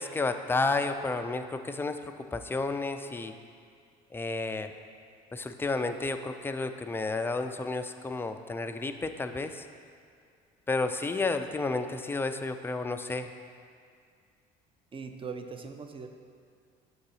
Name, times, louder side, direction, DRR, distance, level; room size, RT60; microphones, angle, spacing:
voice 1, 0.0-2.0 2.3-3.3 4.1-4.7 5.3-9.6 10.7-13.3, left 3 dB, 10° left, 7 dB, 0.4 m, -31 dB
voice 2, 14.9-16.1, right 5 dB, 30° right, 6 dB, 0.6 m, -40 dB
6.2 x 3.9 x 5.6 m, 2.2 s
supercardioid pair, 80°, 18 cm